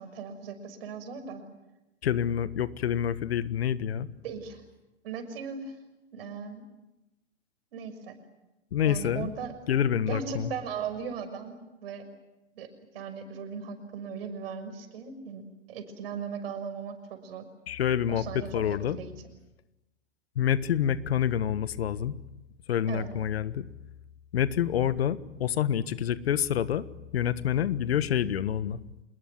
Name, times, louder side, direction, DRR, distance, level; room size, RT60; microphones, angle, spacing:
voice 1, 0.0-1.4 4.2-4.6 5.0-5.8 6.1-6.7 7.7-8.2 8.8-9.5 10.1-12.1 12.5-12.7 12.9-17.4 18.1-18.6 18.9-19.3 22.9-23.1, right 6 dB, 60° right, 9 dB, 6.3 m, -38 dB
voice 2, 2.0-4.1 8.7-9.3 9.7-10.5 17.7-19.0 20.3-22.1 22.7-23.7 24.3-26.9 27.1-28.8, left 9 dB, 65° left, 15 dB, 1.5 m, -27 dB
27.0 x 21.0 x 9.6 m, 0.97 s
hypercardioid pair, 115°, 33 cm